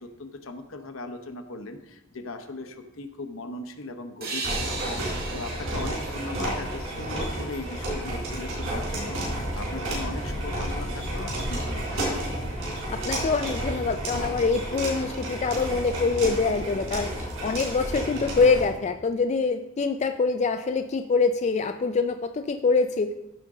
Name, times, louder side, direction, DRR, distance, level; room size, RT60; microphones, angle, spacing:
voice 1, 0.0-4.8 5.1-12.2 18.2-18.5, left 2 dB, 75° left, 6 dB, 0.9 m, -38 dB
sound 1, 4.2-7.7, right 3 dB, 45° right, 1.7 m, -37 dB
sound 2, 4.4-18.7, right 1 dB, 70° right, 4.0 m, -32 dB
sound 3, 8.1-18.3, equal, 15° left, 1.1 m, -39 dB
voice 2, 12.9-17.1 17.4-23.1, left 4 dB, 30° left, 7 dB, 0.3 m, -24 dB
14.5 x 5.1 x 3.7 m, 0.90 s
head